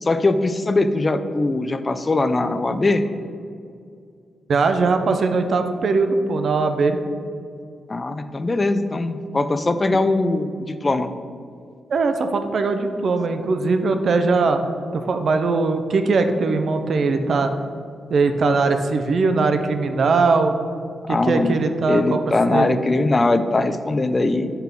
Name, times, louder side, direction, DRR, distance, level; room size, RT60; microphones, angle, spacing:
voice 1, 0.0-3.0 7.9-11.1 21.1-21.6 21.9-24.5, left 2 dB, 35° left, 10 dB, 0.4 m, -21 dB
voice 2, 4.5-7.0 11.9-14.6 14.9-17.5 18.1-20.5 21.1-22.2 22.5-22.8, right 4 dB, 65° right, 7 dB, 0.5 m, -20 dB
5.5 x 3.7 x 5.9 m, 2.3 s
cardioid pair, 65°, 0 cm